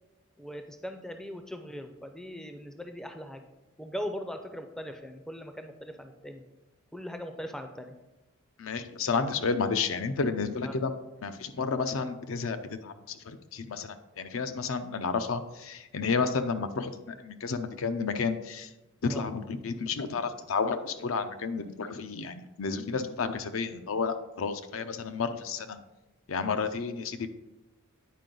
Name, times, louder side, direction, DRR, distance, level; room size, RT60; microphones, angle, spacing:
voice 1, 0.4-3.4 3.8-6.4 6.9-7.9 10.7-10.8 19.1-19.3, equal, 5° left, 6 dB, 0.4 m, -40 dB
voice 2, 8.6-10.9 11.2-18.7 19.0-25.8 26.3-27.3, left 5 dB, 80° left, 9 dB, 0.5 m, -31 dB
9.3 x 4.5 x 3.8 m, 1.0 s
head